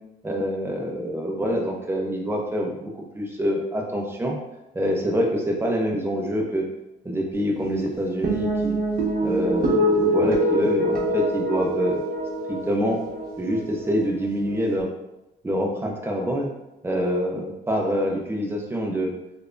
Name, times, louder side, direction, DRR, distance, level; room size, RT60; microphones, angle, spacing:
voice 1, 0.2-4.4 4.7-6.7 7.0-8.8 9.2-12.0 12.7-13.0 13.4-14.9 15.4-16.5 16.8-19.1, equal, 10° right, 0 dB, 0.7 m, -26 dB
sound 1, 8.2-14.8, right 1 dB, 45° right, 1.0 m, -25 dB
3.3 x 3.3 x 2.5 m, 0.93 s
cardioid pair, 90°, 20 cm